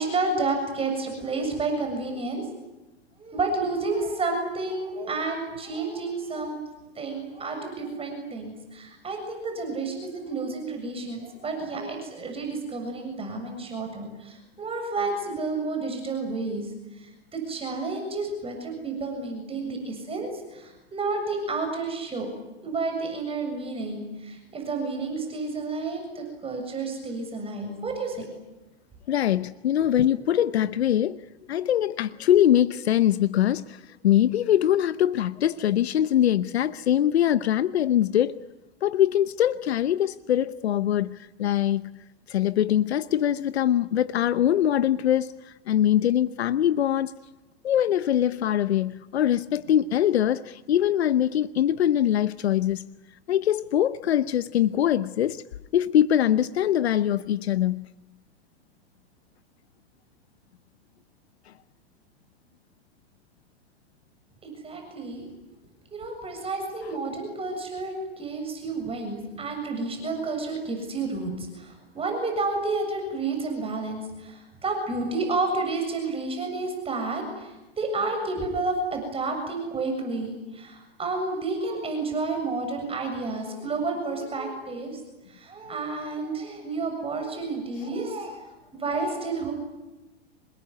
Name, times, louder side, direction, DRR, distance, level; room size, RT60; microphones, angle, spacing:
voice 1, 0.0-2.4 3.2-6.6 7.0-16.7 17.0-22.3 22.6-28.3 30.0-30.1 64.4-65.3 65.9-85.0 85.3-88.4 88.7-89.5, right 3 dB, 20° right, 7.3 m, -30 dB
voice 2, 29.1-31.2 31.5-38.4 38.8-41.8 42.3-47.1 47.6-52.9 53.3-55.4 55.7-57.9 61.5-61.6, left 11 dB, 85° left, 0.9 m, -23 dB
27.0 x 21.5 x 9.6 m
hypercardioid pair, 120°, 31 cm